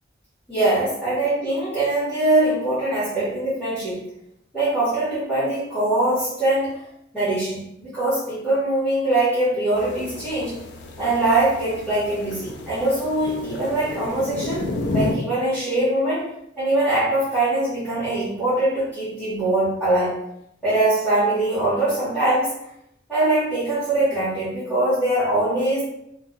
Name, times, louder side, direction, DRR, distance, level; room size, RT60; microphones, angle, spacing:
voice 1, 0.5-4.1 4.5-6.8 7.1-10.6 11.0-20.2 20.6-22.6 23.1-25.9, right 2 dB, ahead, -14 dB, 1.4 m, -22 dB
sound 1, 9.7-15.2, left 2 dB, 60° left, 0.4 m, -31 dB
2.7 x 2.2 x 3.7 m, 0.77 s
head